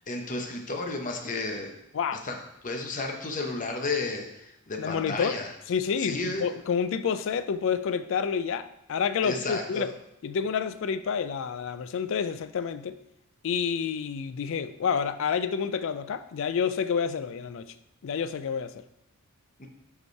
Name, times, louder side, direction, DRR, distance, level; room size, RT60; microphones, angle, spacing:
voice 1, 0.1-1.7 2.2-2.3 2.6-5.5 6.0-6.4 9.2-9.9 19.6-19.7, left 3 dB, 35° left, 0.8 m, -32 dB
voice 2, 1.9-2.3 4.8-5.4 5.7-9.9 10.2-13.0 13.4-17.7 18.0-18.8, left 6 dB, 60° left, 0.3 m, -29 dB
5.1 x 4.8 x 4.6 m
head